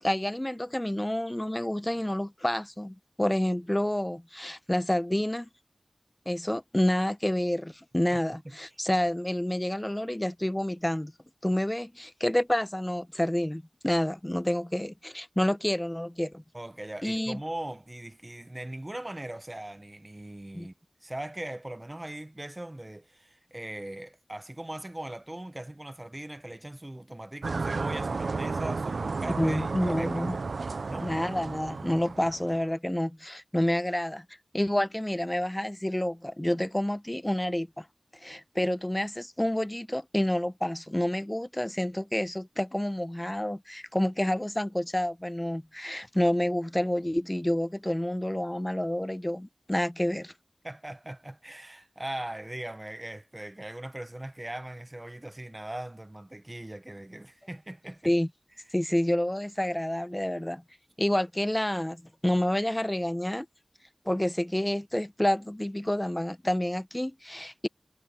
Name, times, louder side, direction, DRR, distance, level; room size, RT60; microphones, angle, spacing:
voice 1, 0.0-5.5 6.3-11.1 11.4-16.4 17.0-17.4 20.5-20.7 29.4-30.4 31.0-34.2 34.5-37.9 38.2-50.3 58.0-58.3 58.7-60.6 61.0-63.5 64.0-67.7, left 1 dB, 15° left, 0.9 m, -29 dB
voice 2, 16.5-20.7 21.0-30.3 30.9-31.1 50.6-58.1, right 1 dB, 25° right, 0.9 m, -40 dB
sound 1, 27.4-32.7, right 4 dB, 85° right, 0.6 m, -32 dB
wide cardioid pair, 50°, 0 cm